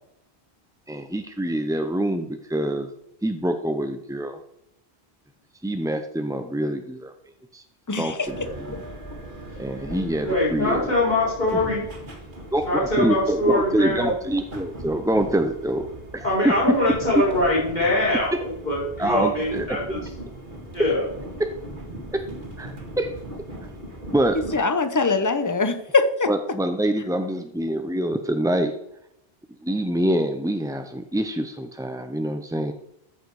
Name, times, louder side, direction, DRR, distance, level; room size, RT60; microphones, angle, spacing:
voice 1, 0.9-2.9 3.2-4.4 5.6-7.1 7.5-7.6 8.0-8.8 9.6-10.9 11.5-11.6 12.5-12.6 13.0-15.9 16.1-16.5 19.0-19.7 21.4-21.5 22.1-22.2 22.6-23.1 24.1-24.4 26.3-28.7 29.6-32.7, right 1 dB, 5° right, 6 dB, 0.4 m, -25 dB
voice 2, 7.9-8.3 24.5-26.3, left 4 dB, 20° left, 9 dB, 0.8 m, -22 dB
sound 1, 8.2-24.6, right 1 dB, 50° right, 2.0 m, -39 dB
voice 3, 10.2-11.8 12.7-14.1 16.2-20.0 20.7-21.0, left 1 dB, 45° left, -6 dB, 4.7 m, -23 dB
14.0 x 6.4 x 4.8 m, 0.81 s
omnidirectional pair, 1.1 m